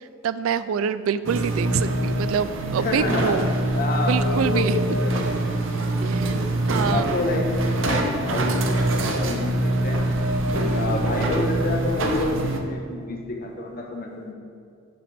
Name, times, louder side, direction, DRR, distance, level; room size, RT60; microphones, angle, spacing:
voice 1, 0.2-3.5 4.1-4.7 6.0-6.3 6.7-7.1, right 7 dB, 85° right, 14 dB, 0.3 m, -25 dB
sound 1, 1.2-12.6, right 1 dB, 70° right, 0.7 m, -24 dB
voice 2, 2.7-3.4 3.7-5.4 5.8-6.4 6.8-7.5 7.8-10.0 10.5-14.3, left 2 dB, 50° left, 1 dB, 1.1 m, -28 dB
11.5 x 5.8 x 3.4 m, 2.3 s
head